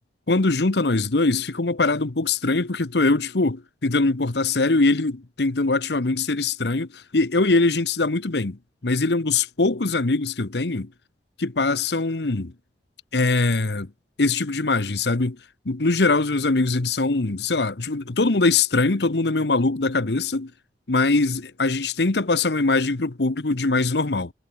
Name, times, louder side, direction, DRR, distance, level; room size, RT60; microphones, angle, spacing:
voice 1, 0.3-10.9 11.4-12.5 13.1-13.9 14.2-15.4 15.6-20.5 20.9-24.3, left 3 dB, 65° left, 1.1 m, -22 dB
head